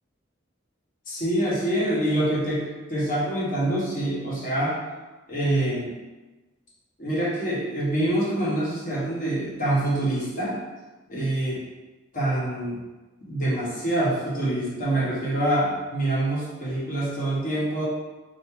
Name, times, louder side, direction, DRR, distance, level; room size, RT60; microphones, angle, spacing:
voice 1, 1.1-4.8 5.3-5.9 7.0-10.6 11.1-11.6 12.1-12.8 13.3-17.8, right 1 dB, 45° left, -6 dB, 1.0 m, -25 dB
3.4 x 2.6 x 3.0 m, 1.2 s
head